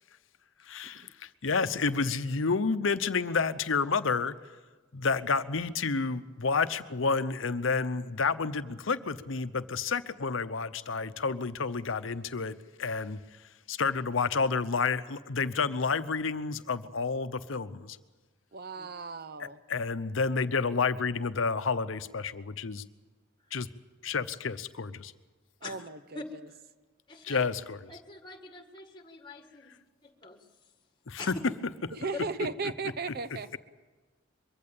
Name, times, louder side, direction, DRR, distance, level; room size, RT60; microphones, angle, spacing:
voice 1, 0.7-4.3 4.9-13.2 13.7-18.0 19.4-22.8 23.5-23.7 24.0-25.1 27.2-27.8 31.1-31.3, left 4 dB, 65° left, 13 dB, 0.8 m, -30 dB
voice 2, 18.5-19.6 25.6-26.2 31.9-33.6, right 4 dB, 50° right, 13 dB, 0.7 m, -36 dB
voice 3, 27.1-27.4 27.9-29.7 30.0-30.5 31.2-31.3, left 3 dB, 20° left, 5 dB, 1.8 m, -45 dB
23.0 x 15.0 x 8.8 m, 1.3 s
head